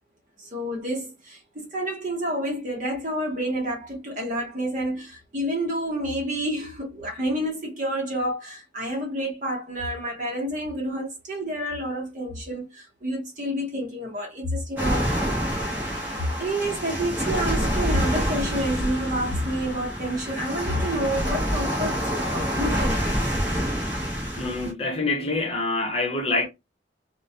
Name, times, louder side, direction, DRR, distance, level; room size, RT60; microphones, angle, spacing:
voice 1, 0.4-15.5 16.2-23.5, right 1 dB, 45° right, 0.9 m, -29 dB
sound 1, 14.8-24.7, equal, 10° right, 0.7 m, -27 dB
voice 2, 24.4-26.5, left 2 dB, 35° left, 0.6 m, -26 dB
2.3 x 2.1 x 2.6 m
head